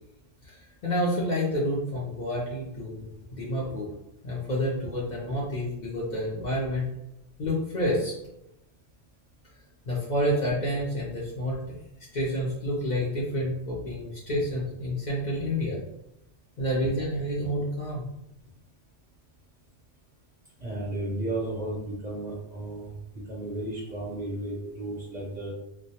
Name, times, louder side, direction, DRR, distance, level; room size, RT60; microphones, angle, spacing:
voice 1, 0.4-3.9 4.2-6.9 7.4-8.2 9.9-11.8 12.1-15.8 16.6-18.1, equal, 50° left, -5 dB, 0.6 m, -29 dB
voice 2, 20.6-22.9 23.3-25.5, right 1 dB, 50° right, -5 dB, 0.6 m, -33 dB
2.2 x 2.1 x 2.7 m, 0.84 s
omnidirectional pair, 1.1 m